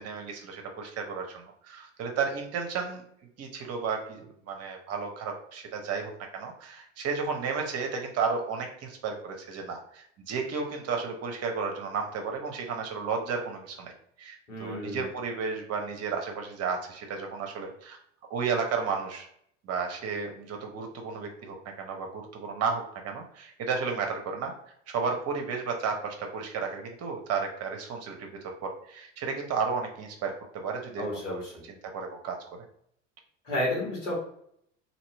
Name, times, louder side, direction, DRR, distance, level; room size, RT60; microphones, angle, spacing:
voice 1, 0.0-3.0 3.4-13.9 14.2-18.0 18.3-19.3 19.6-24.5 24.9-32.4, right 5 dB, 40° right, 3 dB, 0.9 m, -33 dB
voice 2, 14.5-15.0 31.0-31.5 33.4-34.1, left 1 dB, 80° left, -4 dB, 1.6 m, -31 dB
2.9 x 2.9 x 4.4 m, 0.69 s
figure-of-eight pair, 65°, 36 cm